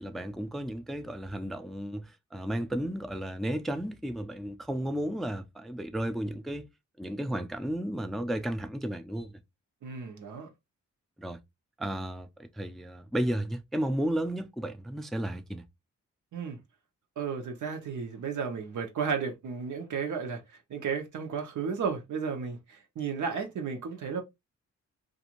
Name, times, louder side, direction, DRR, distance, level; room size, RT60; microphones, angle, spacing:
voice 1, 0.0-6.7 7.0-9.4 11.2-11.4 11.8-15.7, right 1 dB, ahead, 0.3 m, -33 dB
voice 2, 9.8-10.5 16.3-16.6 17.2-20.4 20.7-24.2, right 6 dB, 85° right, 0.9 m, -33 dB
2.5 x 2.5 x 2.8 m
cardioid pair, 95°, 29 cm